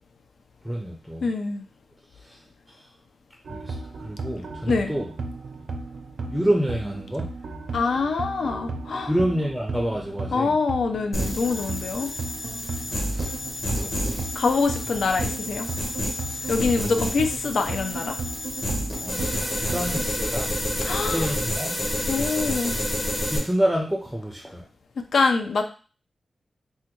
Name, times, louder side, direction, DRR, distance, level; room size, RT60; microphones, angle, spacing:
voice 1, 0.6-1.3 2.2-2.4 2.7-2.9 3.5-5.1 6.3-7.3 9.1-10.5 12.9-13.4 13.7-13.9 16.4-16.5 19.0-19.3 19.6-20.5 20.9-21.8 23.3-24.6, equal, 5° right, 0 dB, 0.4 m, -28 dB
voice 2, 1.2-1.6 4.6-4.9 7.7-9.1 10.3-12.1 14.4-15.7 16.5-18.2 20.8-21.4 22.1-22.8 25.0-25.6, left 4 dB, 85° left, 5 dB, 0.4 m, -25 dB
sound 1, 3.4-20.1, right 3 dB, 70° right, 0.4 m, -35 dB
sound 2, 11.1-23.4, left 1 dB, 30° left, 0.9 m, -29 dB
3.3 x 2.2 x 3.0 m, 0.37 s
wide cardioid pair, 115°, 0 cm